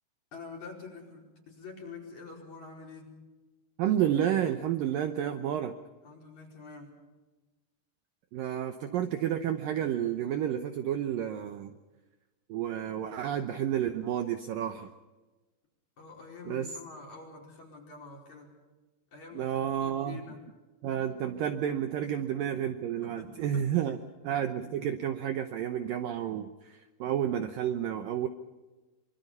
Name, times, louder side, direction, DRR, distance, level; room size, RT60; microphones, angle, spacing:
voice 1, 0.3-3.1 6.0-6.9 16.0-18.5 19.1-20.4 22.0-22.1 23.0-24.0, left 4 dB, 40° left, -1 dB, 5.9 m, -47 dB
voice 2, 3.8-5.8 8.3-11.7 12.5-14.9 16.5-16.7 19.3-20.2 20.8-24.0 24.2-28.3, right 10 dB, 75° right, 7 dB, 2.2 m, -30 dB
25.5 x 24.5 x 5.6 m, 1.2 s
omnidirectional pair, 5.0 m